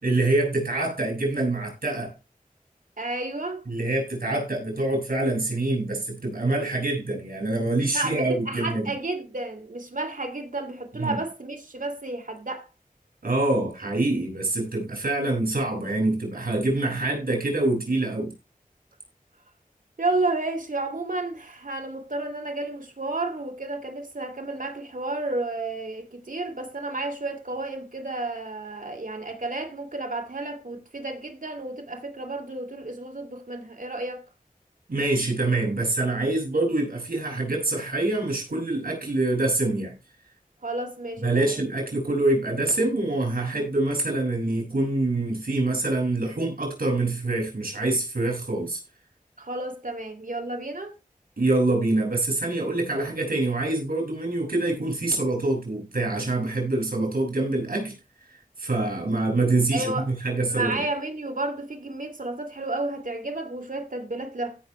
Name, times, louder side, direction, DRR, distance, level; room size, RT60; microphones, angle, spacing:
voice 1, 0.0-2.1 3.7-8.9 11.0-11.2 13.2-18.3 34.9-39.9 41.2-48.8 51.4-57.9 58.6-60.8, right 2 dB, 90° right, 6.3 m, -25 dB
voice 2, 3.0-3.6 7.9-12.7 20.0-34.2 40.6-41.6 49.4-50.9 59.7-60.1 60.5-64.6, right 2 dB, 65° right, 2.8 m, -31 dB
17.0 x 6.4 x 3.2 m
wide cardioid pair, 55°, 15 cm